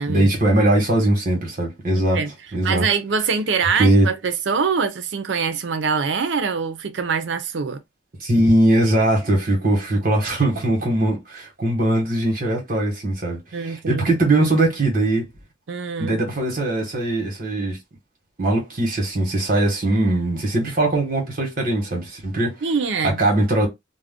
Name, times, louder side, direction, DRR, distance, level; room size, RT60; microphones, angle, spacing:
voice 1, 0.1-2.2 2.5-2.9 3.8-4.1 8.2-15.2 16.0-17.8 18.4-22.5 23.2-23.7, right 1 dB, 50° right, 1.1 m, -20 dB
voice 2, 2.6-7.8 13.5-14.1 15.7-16.2 22.6-23.2, right 5 dB, 75° right, 0.5 m, -24 dB
2.4 x 2.1 x 3.5 m
head